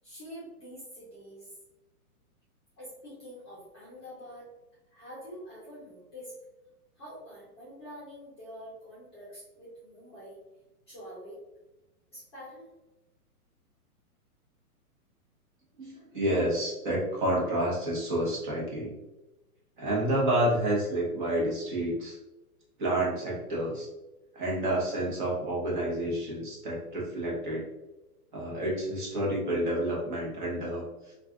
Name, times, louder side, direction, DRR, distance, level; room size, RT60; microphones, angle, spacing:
voice 1, 0.0-1.6 2.8-4.5 4.9-6.3 7.0-10.4 10.9-11.4 12.1-12.7, equal, 20° left, -9 dB, 0.6 m, -46 dB
voice 2, 15.8-18.9 19.8-22.2 22.8-23.9 24.3-27.7 28.3-31.1, right 1 dB, 35° right, -4 dB, 0.9 m, -29 dB
2.4 x 2.3 x 3.5 m, 1.0 s
hypercardioid pair, 175°, 45 cm